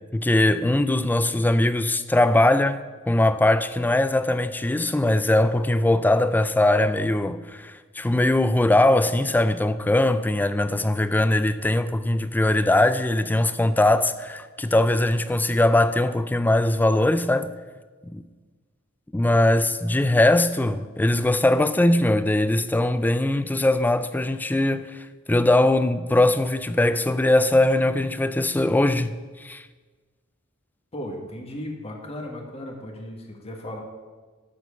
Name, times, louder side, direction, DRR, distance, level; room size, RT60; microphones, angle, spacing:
voice 1, 0.1-2.8 3.1-17.5 18.1-18.2 19.1-29.1 29.4-29.6, left 1 dB, 10° left, 0.3 m, -21 dB
voice 2, 30.9-33.8, left 1 dB, 30° left, 1.5 m, -36 dB
12.0 x 4.5 x 7.0 m
head